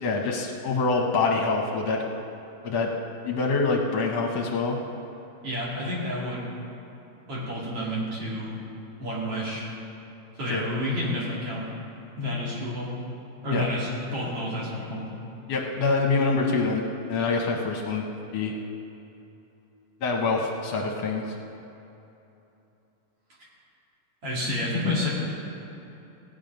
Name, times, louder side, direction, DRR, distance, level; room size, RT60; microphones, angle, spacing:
voice 1, 0.0-2.0 2.6-2.9 3.3-4.8 10.5-10.6 13.5-13.7 15.5-18.0 18.3-18.5 20.0-21.2, left 4 dB, 65° left, 1 dB, 1.7 m, -25 dB
voice 2, 5.4-6.4 7.3-8.6 9.0-9.7 10.4-11.7 12.2-12.9 13.4-15.0 24.2-25.1, left 1 dB, 45° right, -6 dB, 3.4 m, -29 dB
16.0 x 8.9 x 5.3 m, 2.9 s
omnidirectional pair, 3.9 m